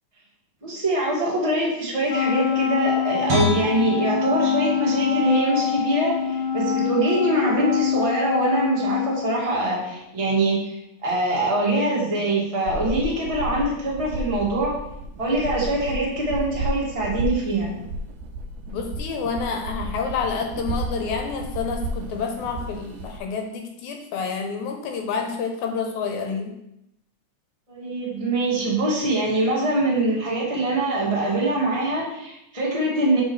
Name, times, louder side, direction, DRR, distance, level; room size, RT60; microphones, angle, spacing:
voice 1, 0.6-10.7 11.0-14.7 15.2-17.8 27.7-33.2, right 1 dB, 15° right, -5 dB, 1.3 m, -23 dB
Wind instrument woodwind instrument, 2.1-9.7, left 8 dB, 20° left, 1.2 m, -25 dB
Guitar, 3.3-6.4 6.8-7.0, equal, 60° right, 2.0 m, -29 dB
sound 1, 12.6-23.2, right 1 dB, 90° right, 2.3 m, -32 dB
voice 2, 18.7-26.5, left 5 dB, 75° left, 3 dB, 2.1 m, -28 dB
6.5 x 6.3 x 3.2 m, 0.82 s
omnidirectional pair, 3.6 m